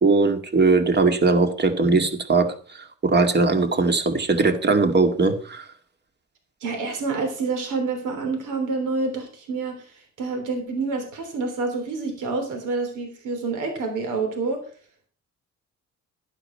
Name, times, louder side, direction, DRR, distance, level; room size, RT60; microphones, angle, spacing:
voice 1, 0.0-5.7, right 3 dB, 35° right, 6 dB, 2.1 m, -20 dB
voice 2, 6.6-9.9 10.2-14.6, right 4 dB, 85° right, 5 dB, 3.4 m, -27 dB
11.5 x 11.0 x 4.4 m, 0.43 s
cardioid pair, 90°, 30 cm